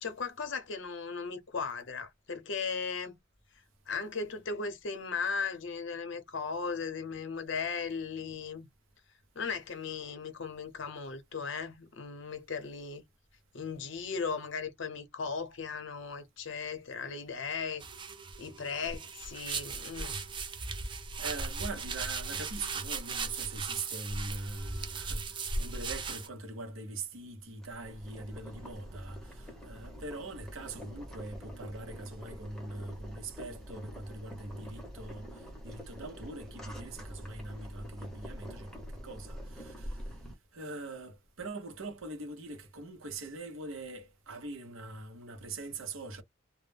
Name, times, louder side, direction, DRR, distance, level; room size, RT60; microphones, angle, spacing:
voice 1, 0.0-3.2 3.9-8.7 9.3-13.0 13.5-17.8 18.4-20.2, left 5 dB, 60° left, 0.6 m, -37 dB
sound 1, 17.8-26.3, right 4 dB, 25° right, 0.4 m, -37 dB
voice 2, 21.2-35.2 35.6-40.0 40.5-46.2, right 2 dB, 80° right, 0.7 m, -42 dB
Boiling, 27.6-40.3, equal, ahead, 0.8 m, -46 dB
2.2 x 2.0 x 3.2 m
head